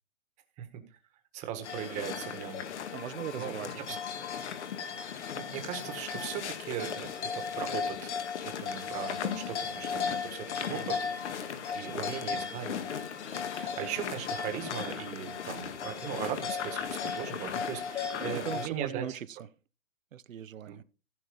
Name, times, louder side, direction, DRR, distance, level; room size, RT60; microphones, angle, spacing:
voice 1, 1.3-2.6 3.4-4.0 5.3-8.2 8.6-12.8 13.5-19.1 20.7-20.8, right 10 dB, 15° right, 1.5 m, -39 dB
sound 1, 1.6-18.7, left 7 dB, 55° left, 1.8 m, -36 dB
voice 2, 2.9-4.0 10.6-10.9 11.8-12.4 18.4-19.3 20.1-20.8, right 9 dB, 70° right, 0.9 m, -40 dB
15.5 x 5.9 x 5.4 m
hypercardioid pair, 160°, 41 cm